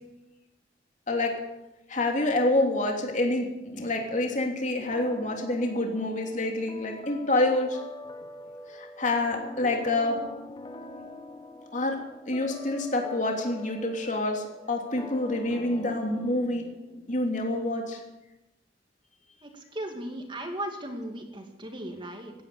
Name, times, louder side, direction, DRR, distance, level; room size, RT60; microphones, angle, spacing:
voice 1, 1.9-7.8 8.7-10.2 11.7-12.0 12.3-16.6 17.1-18.0, left 2 dB, 45° left, 2 dB, 3.0 m, -27 dB
sound 1, 4.9-17.3, left 2 dB, 25° left, 1.3 m, -44 dB
voice 2, 19.4-22.3, right 1 dB, 25° right, 3 dB, 2.5 m, -37 dB
16.0 x 10.0 x 8.5 m, 0.96 s
head